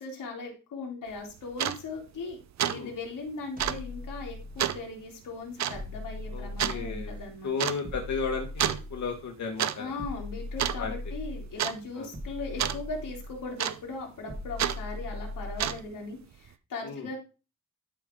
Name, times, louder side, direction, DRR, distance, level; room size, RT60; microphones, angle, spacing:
voice 1, 0.0-2.4 2.6-7.5 9.8-17.2, left 3 dB, 90° left, 0 dB, 3.1 m, -39 dB
sound 1, 1.1-1.2 1.5-1.8 2.2-2.3 2.6-2.8 3.1-3.2 3.6-3.8 4.6-4.8 5.6-5.8 6.6-6.8 7.6-7.8 8.6-8.8 9.4-9.8 10.0-10.3 10.6-11.1 11.6-11.8 12.6-12.8 13.6-14.0 14.6-14.8 15.4-16.0, right 10 dB, 60° right, 0.6 m, -29 dB
sound 2, 3.6-4.9 5.7-7.3 7.8-9.3 10.0-11.6 12.1-13.5 14.3-15.9, left 2 dB, 25° right, 1.7 m, -39 dB
voice 2, 6.3-7.1 7.4-9.9 10.8-10.9 12.0-12.1 16.8-17.1, left 5 dB, 60° left, 2 dB, 1.3 m, -34 dB
12.0 x 5.3 x 3.6 m, 0.33 s
wide cardioid pair, 175°, 32 cm